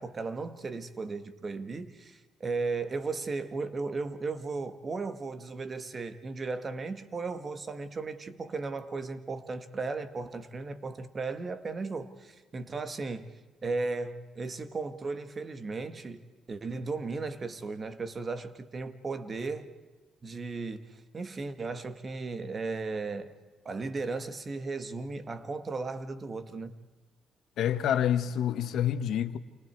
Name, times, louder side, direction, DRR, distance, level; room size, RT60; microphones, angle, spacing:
voice 1, 0.0-13.3 13.6-19.7 20.2-23.3 23.7-26.7, right 3 dB, 35° right, 1.8 m, -36 dB
voice 2, 27.6-29.4, left 10 dB, 75° left, 1.3 m, -27 dB
28.5 x 28.5 x 4.7 m
cardioid pair, 90°, 0 cm